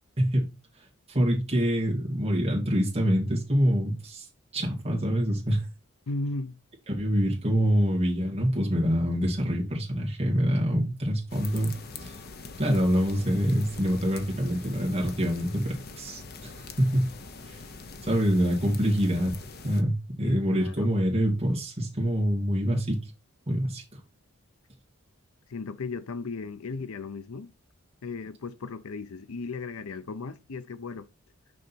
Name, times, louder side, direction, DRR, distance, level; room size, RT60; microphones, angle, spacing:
voice 1, 0.2-0.5 1.1-4.3 4.5-5.7 6.9-11.7 12.0-12.1 12.6-17.1 17.5-17.6 18.0-19.3 19.6-23.0 23.5-24.0, equal, 25° right, 2.4 m, -25 dB
voice 2, 6.1-6.6 20.2-20.9 25.5-27.5 28.0-31.1, left 3 dB, 75° left, 0.6 m, -36 dB
sound 1, 11.3-19.8, left 4 dB, 45° left, 0.8 m, -43 dB
6.4 x 5.2 x 4.5 m
head